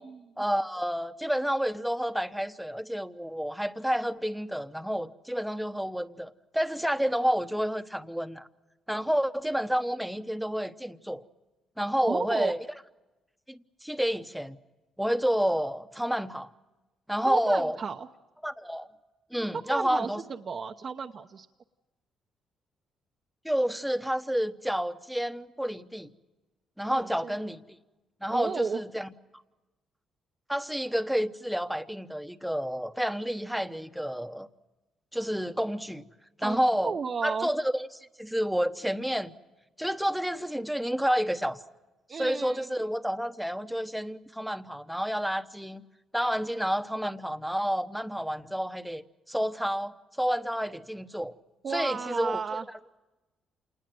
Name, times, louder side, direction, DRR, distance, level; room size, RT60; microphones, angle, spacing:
voice 1, 0.4-8.5 8.9-11.2 11.8-12.6 13.5-14.6 15.0-16.5 17.1-17.8 18.4-18.9 19.3-20.2 23.4-26.1 26.8-27.6 28.2-29.1 30.5-34.5 35.1-36.0 36.4-39.3 39.8-41.6 42.1-45.8 46.1-51.3 51.7-52.6, equal, ahead, 1.1 m, -29 dB
voice 2, 12.0-12.5 17.2-18.1 19.6-21.5 27.0-27.4 28.3-28.8 36.4-36.6 36.8-37.5 42.1-42.9 51.6-52.7, right 5 dB, 45° right, 0.9 m, -33 dB
28.0 x 20.0 x 7.8 m
cardioid pair, 90°, 0 cm